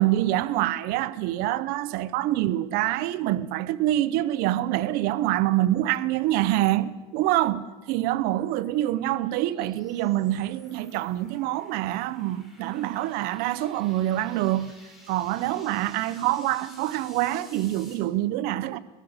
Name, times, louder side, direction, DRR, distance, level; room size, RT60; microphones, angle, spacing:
voice 1, 0.0-14.8 15.1-18.8, right 14 dB, 45° right, 0.9 m, -26 dB
sound 1, 6.8-17.9, left 1 dB, ahead, 5.7 m, -54 dB
21.0 x 17.5 x 7.9 m
supercardioid pair, 160°, 21 cm